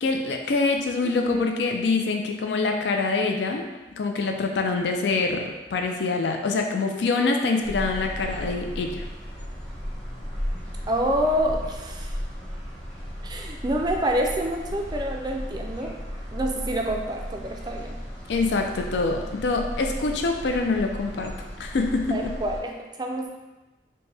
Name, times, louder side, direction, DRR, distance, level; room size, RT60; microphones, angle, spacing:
voice 1, 0.0-3.7 4.0-9.0 18.3-21.3 21.6-22.3, left 3 dB, 75° left, 3 dB, 0.4 m, -25 dB
sound 1, 7.6-22.6, equal, 5° left, 0.7 m, -35 dB
voice 2, 10.9-12.1 13.2-16.0 16.3-18.0 22.1-23.3, right 1 dB, 25° right, 2 dB, 0.3 m, -27 dB
4.3 x 2.2 x 3.3 m, 1.1 s
head